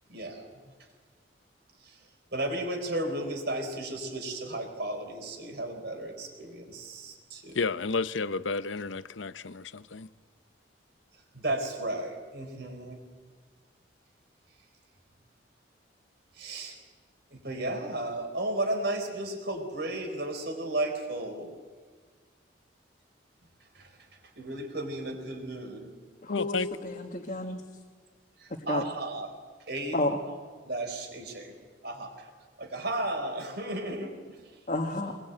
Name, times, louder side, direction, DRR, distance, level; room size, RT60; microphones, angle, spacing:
voice 1, 0.1-0.9 1.8-7.6 11.1-13.0 16.3-16.8 17.3-21.6 23.6-25.9 28.4-30.0 30.6-31.6 31.8-32.3 32.6-34.6, right 1 dB, 55° right, 4.2 m, -34 dB
voice 2, 7.6-10.1 26.3-26.7, left 4 dB, 85° left, 0.8 m, -31 dB
voice 3, 26.2-27.6 28.7-28.8 29.9-30.2 34.7-35.2, left 1 dB, 40° left, 1.7 m, -31 dB
22.5 x 20.5 x 9.1 m
head